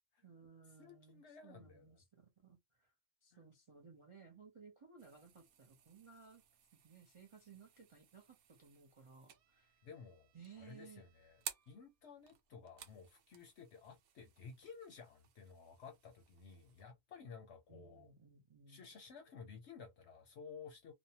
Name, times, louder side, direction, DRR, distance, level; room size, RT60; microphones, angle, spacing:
voice 1, 0.2-2.9 3.2-6.4 6.7-9.8 10.3-11.0 17.7-18.8, right 5 dB, 45° right, 0.4 m, -60 dB
voice 2, 0.8-2.0 3.3-3.5 9.8-10.3 10.6-11.4 11.7-18.1 18.7-20.9, left 5 dB, 65° left, 0.8 m, -55 dB
sound 1, 5.0-16.8, right 8 dB, 90° right, 1.1 m, -56 dB
2.6 x 2.1 x 2.7 m
omnidirectional pair, 1.4 m